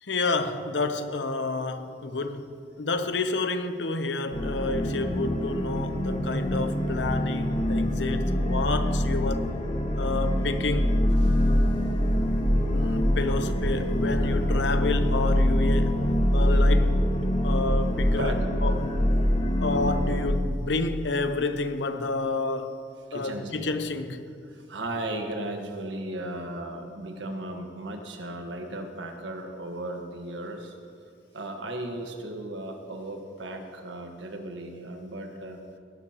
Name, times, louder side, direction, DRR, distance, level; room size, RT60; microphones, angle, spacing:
voice 1, 0.0-9.5 10.0-11.0 12.7-16.0 16.3-17.0 17.4-19.0 19.6-22.8 23.1-24.2, left 3 dB, 75° left, 0.8 m, -29 dB
sound 1, 4.3-20.3, equal, 35° left, 1.0 m, -24 dB
voice 2, 11.2-11.7 18.2-18.8 19.3-19.4 23.1-23.5 24.4-30.8 31.3-35.6, right 1 dB, 85° right, 1.4 m, -36 dB
17.5 x 11.5 x 3.0 m
head